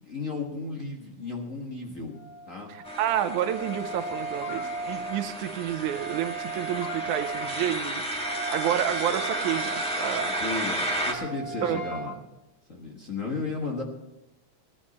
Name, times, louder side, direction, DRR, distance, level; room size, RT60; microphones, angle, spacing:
voice 1, 0.1-2.1 2.5-2.7 10.2-12.2 12.7-13.8, left 3 dB, 40° left, -1 dB, 1.1 m, -34 dB
Wind instrument woodwind instrument, 2.1-12.1, right 3 dB, 65° left, 5.5 m, -37 dB
voice 2, 2.7-8.0 8.5-10.4 11.6-11.8, right 11 dB, 80° right, 10 dB, 2.1 m, -29 dB
sound 1, 2.8-11.1, right 1 dB, 5° left, 0.6 m, -33 dB
sound 2, 4.4-4.7 6.8-7.0 9.2-9.4 11.6-12.2, left 13 dB, 80° left, 2.0 m, -40 dB
17.0 x 11.0 x 4.2 m, 0.94 s
omnidirectional pair, 3.5 m